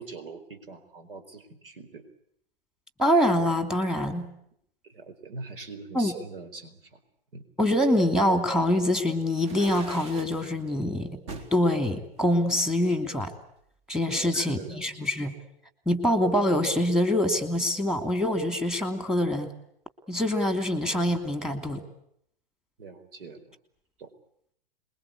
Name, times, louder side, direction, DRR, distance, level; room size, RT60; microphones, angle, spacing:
voice 1, 0.0-2.0 4.8-7.0 7.3-7.4 14.2-15.1 22.8-23.6 24.0-24.1, right 4 dB, 70° right, 9 dB, 4.5 m, -43 dB
voice 2, 3.0-4.3 5.9-6.1 7.6-11.2 11.5-13.3 13.9-15.3 15.9-19.5 20.1-21.8, left 1 dB, ahead, 8 dB, 2.8 m, -25 dB
sound 1, 9.3-10.4 11.3-11.6 12.2-13.3, right 3 dB, 40° right, 4.4 m, -41 dB
27.5 x 22.0 x 8.5 m, 0.72 s
hypercardioid pair, 120°, 30 cm